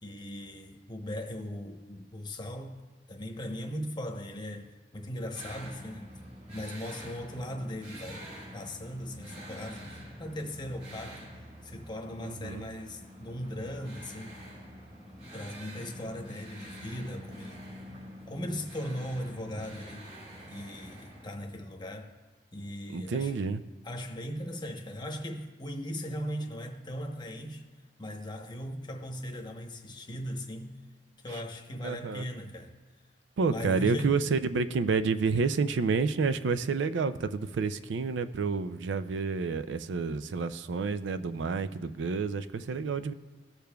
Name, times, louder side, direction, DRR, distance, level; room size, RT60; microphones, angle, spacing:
voice 1, 0.0-2.8 3.1-6.1 6.5-8.3 8.5-11.3 11.6-14.4 15.3-17.6 18.3-20.1 20.5-22.1 22.5-23.4 23.8-27.6 28.0-30.8 31.2-32.7 33.5-34.2, equal, 25° left, 0.9 m, -38 dB
sound 1, 5.3-21.3, equal, 40° right, 3.3 m, -46 dB
voice 2, 12.2-12.6 22.9-23.6 31.3-31.4 31.8-32.3 33.4-43.1, right 4 dB, 80° right, 0.4 m, -29 dB
19.0 x 6.7 x 2.3 m
head